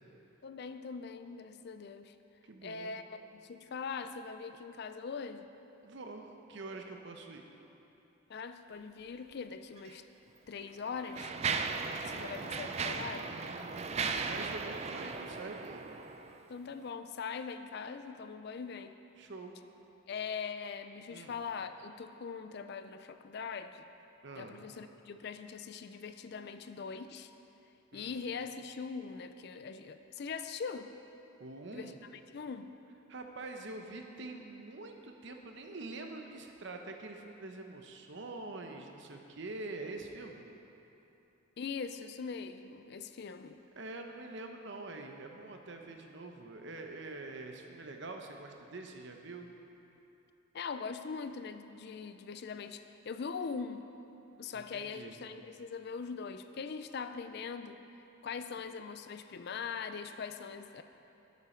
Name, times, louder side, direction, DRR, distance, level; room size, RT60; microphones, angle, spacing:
voice 1, 0.4-2.1 2.6-5.4 8.3-10.0 10.5-11.3 12.0-13.3 16.5-18.9 20.1-23.8 24.4-27.3 27.9-30.9 31.7-31.9 32.3-32.7 41.6-43.6 50.5-53.8 54.4-57.8 58.2-60.8, left 5 dB, 50° left, 9 dB, 0.4 m, -41 dB
voice 2, 2.4-3.0 5.8-7.4 13.3-15.9 19.2-19.6 21.1-21.4 24.2-24.7 27.9-28.2 31.4-32.0 33.1-40.4 43.8-49.5 54.5-55.2, right 2 dB, 55° right, 3 dB, 0.9 m, -45 dB
Mechanisms, 9.8-9.9 10.6-16.4, right 5 dB, 30° right, 0.3 m, -37 dB
12.0 x 8.4 x 4.4 m, 2.9 s
head